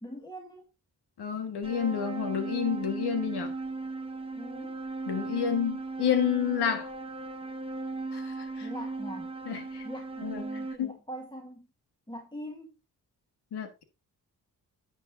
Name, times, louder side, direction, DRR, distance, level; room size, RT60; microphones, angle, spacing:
voice 1, 0.0-0.6 4.4-4.8 8.6-9.3 9.8-11.7 12.1-12.7, equal, 10° left, 1.7 m, -42 dB
voice 2, 1.2-3.5 5.1-6.9 8.1-8.7 9.4-9.8 10.2-11.0 13.5-13.8, left 8 dB, 75° left, 1.6 m, -30 dB
sound 1, 1.6-10.8, right 3 dB, 15° right, 1.2 m, -37 dB
10.5 x 7.6 x 2.6 m
supercardioid pair, 45°, 40 cm